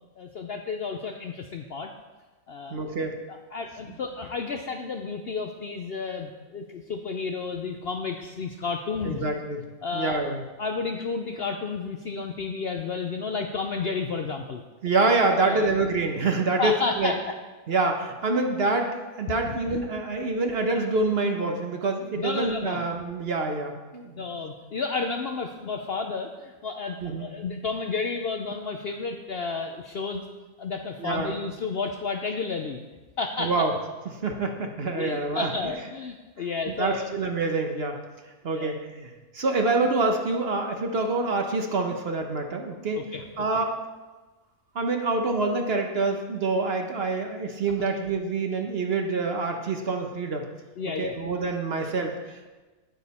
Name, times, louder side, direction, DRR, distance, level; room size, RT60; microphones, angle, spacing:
voice 1, 0.2-1.9 2.5-2.8 3.3-9.3 9.8-10.2 10.6-14.6 15.4-15.7 16.6-17.3 19.5-19.8 22.2-22.8 24.2-30.2 30.6-32.8 33.2-33.7 34.9-37.1 38.5-38.7 43.0-43.3 50.8-51.1, left 4 dB, 60° left, 4 dB, 0.7 m, -31 dB
voice 2, 2.7-3.2 9.0-9.7 9.9-10.4 14.8-17.1 17.7-24.2 27.0-27.3 31.0-31.3 33.4-33.7 34.2-35.7 36.8-38.0 38.4-43.0 43.4-43.7 44.7-50.5 51.0-52.5, right 3 dB, 50° right, 4 dB, 1.0 m, -26 dB
9.2 x 8.9 x 4.2 m, 1.2 s
omnidirectional pair, 1.5 m